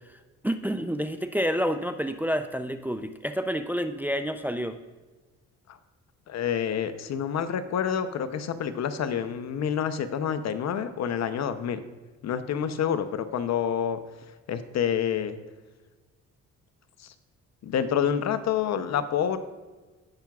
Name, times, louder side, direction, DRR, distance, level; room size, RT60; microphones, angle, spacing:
voice 1, 0.4-4.8, equal, 5° right, 8 dB, 0.4 m, -29 dB
voice 2, 6.3-11.8 12.2-14.0 14.5-15.4 17.0-17.1 17.6-19.4, left 8 dB, 60° left, 10 dB, 0.7 m, -28 dB
16.5 x 5.9 x 2.4 m, 1.3 s
cardioid pair, 90°, 30 cm